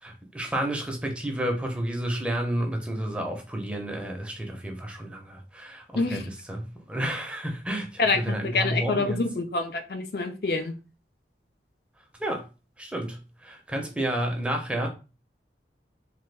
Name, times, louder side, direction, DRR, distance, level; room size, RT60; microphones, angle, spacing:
voice 1, 0.0-5.8 6.1-9.2 12.2-12.4 12.8-14.9, right 1 dB, 5° right, 0.5 m, -31 dB
voice 2, 5.9-6.4 8.0-10.7, left 3 dB, 60° left, 0.4 m, -27 dB
3.2 x 2.2 x 3.3 m
head